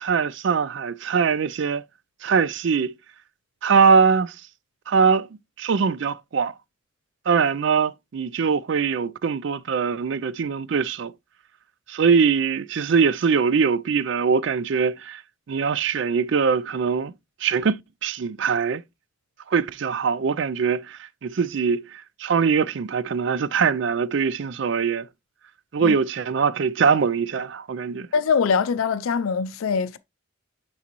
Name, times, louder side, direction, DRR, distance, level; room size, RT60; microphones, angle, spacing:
voice 1, 0.0-1.8 2.2-2.9 3.6-4.4 4.9-5.3 5.6-6.5 7.3-11.1 11.9-15.2 15.5-17.1 17.4-18.8 19.5-25.1 25.7-28.1, right 6 dB, 55° right, 0.4 m, -22 dB
voice 2, 28.1-30.0, left 6 dB, 75° left, 0.4 m, -23 dB
8.5 x 4.0 x 2.9 m
head